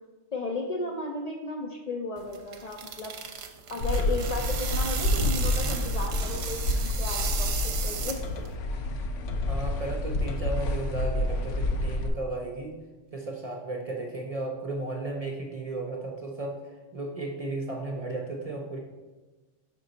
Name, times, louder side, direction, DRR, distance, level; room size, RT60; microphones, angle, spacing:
voice 1, 0.3-3.1 3.7-8.2, left 3 dB, 50° left, 0 dB, 0.5 m, -34 dB
sound 1, 2.2-8.5, right 6 dB, 65° right, 0.8 m, -35 dB
sound 2, 3.8-12.1, left 1 dB, 85° left, 1.0 m, -28 dB
voice 2, 9.5-12.8 13.1-18.8, right 2 dB, 40° right, 0 dB, 0.6 m, -34 dB
5.3 x 5.2 x 3.9 m, 1.2 s
omnidirectional pair, 1.2 m